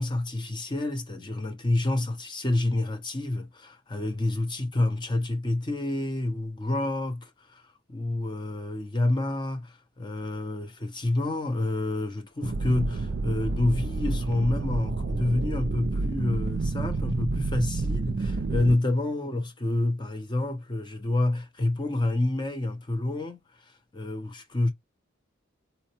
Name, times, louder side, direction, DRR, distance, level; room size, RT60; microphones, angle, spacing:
voice 1, 0.0-24.7, left 2 dB, 25° left, 0.6 m, -28 dB
sound 1, 12.4-18.7, right 3 dB, 55° right, 0.4 m, -29 dB
4.1 x 2.1 x 2.8 m
head